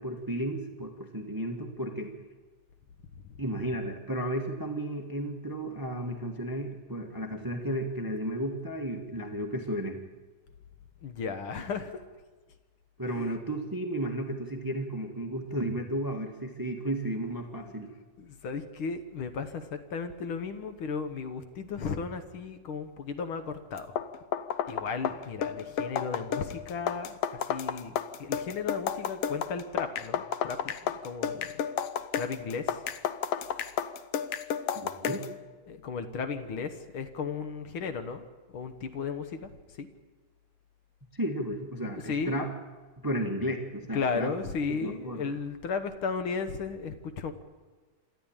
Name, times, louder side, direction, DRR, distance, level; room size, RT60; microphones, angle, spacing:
voice 1, 0.0-2.1 3.4-10.0 13.0-17.9 34.7-35.2 41.1-42.5 43.0-44.3 44.7-45.3, right 1 dB, 25° right, 4 dB, 0.4 m, -33 dB
voice 2, 11.0-12.0 13.1-13.3 17.5-17.7 18.2-23.9 24.7-31.5 32.1-32.8 35.7-38.3 38.5-39.5 39.8-39.9 41.9-42.4 43.9-47.3, left 5 dB, 60° left, 9 dB, 1.5 m, -35 dB
sound 1, 23.8-35.3, left 9 dB, 80° left, 1.3 m, -32 dB
27.5 x 13.0 x 8.9 m, 1.4 s
omnidirectional pair, 3.7 m